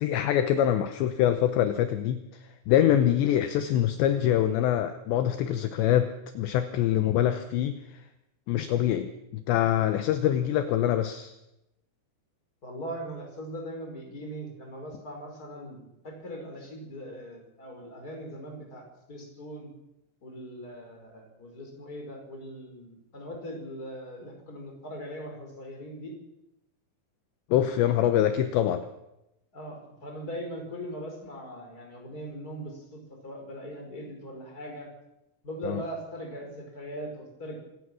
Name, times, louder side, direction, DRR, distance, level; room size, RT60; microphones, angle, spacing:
voice 1, 0.0-6.1 6.3-8.0 8.5-11.3 27.5-28.8 35.7-35.8, left 11 dB, 75° left, 9 dB, 3.0 m, -25 dB
voice 2, 12.6-19.7 20.2-26.1 29.5-34.9 35.4-37.6, equal, 20° left, 2 dB, 4.9 m, -40 dB
26.0 x 17.5 x 6.3 m, 0.91 s
omnidirectional pair, 5.6 m